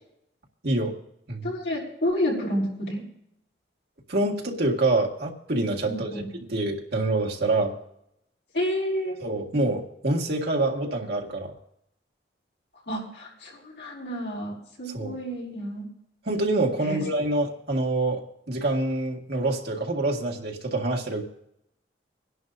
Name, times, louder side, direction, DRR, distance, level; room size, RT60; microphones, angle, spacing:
voice 1, 0.6-1.0 1.3-1.6 4.1-6.2 6.5-7.8 9.2-11.5 14.9-15.2 16.3-21.2, right 2 dB, 60° right, 0 dB, 1.9 m, -26 dB
voice 2, 1.4-3.0 5.8-6.3 8.5-9.1 12.9-15.9 16.8-17.0, equal, 70° left, -4 dB, 5.4 m, -30 dB
25.5 x 11.0 x 2.6 m, 0.77 s
head